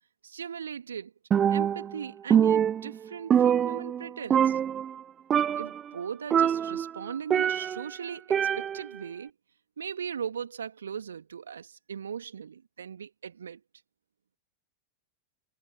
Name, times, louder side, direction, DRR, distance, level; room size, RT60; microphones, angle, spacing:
voice 1, 0.2-1.1 1.5-4.6 5.6-9.3 9.8-13.6, right 7 dB, 70° right, 2.4 m, -38 dB
Percussion, 1.3-2.0 2.3-4.1 4.3-5.0 5.3-5.8 6.3-7.9 8.3-9.0, right 9 dB, 25° right, 0.5 m, -24 dB
figure-of-eight pair, 90°, 0 cm